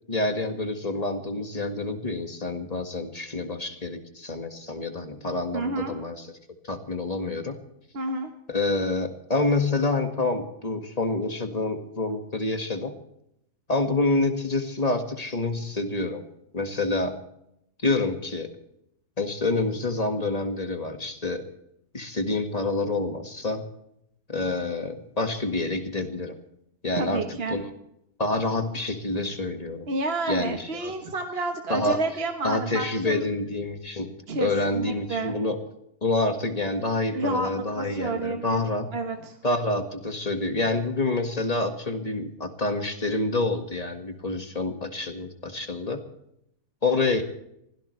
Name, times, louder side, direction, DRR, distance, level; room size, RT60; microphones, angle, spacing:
voice 1, 0.1-6.3 6.6-7.6 8.5-12.9 13.7-16.2 16.5-17.2 17.8-18.5 19.2-21.4 21.9-23.7 24.3-26.4 26.8-27.2 27.5-27.7 28.2-29.9 30.3-30.9 31.7-32.0 32.4-34.1 34.4-35.6 36.0-38.9 39.4-46.0 46.8-47.2, left 2 dB, 25° left, 6 dB, 1.9 m, -27 dB
voice 2, 5.5-6.0 7.9-8.3 27.0-27.6 29.9-33.2 34.3-35.3 37.1-38.6 38.9-39.4, right 3 dB, 45° right, 4 dB, 1.4 m, -30 dB
25.0 x 16.5 x 3.3 m, 0.78 s
omnidirectional pair, 1.6 m